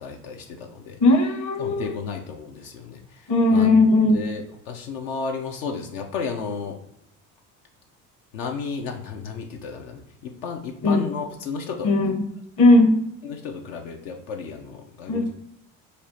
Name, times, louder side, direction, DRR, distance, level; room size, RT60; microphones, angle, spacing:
voice 1, 0.0-1.0 1.6-3.7 4.1-6.8 8.3-12.1 13.2-15.3, left 5 dB, 65° left, 3 dB, 0.6 m, -33 dB
voice 2, 1.0-1.9 3.3-4.2 10.8-11.1 11.8-12.2 12.6-13.0 15.1-15.3, left 2 dB, 45° left, 4 dB, 1.0 m, -17 dB
5.3 x 2.1 x 2.6 m, 0.80 s
hypercardioid pair, 60°, 44 cm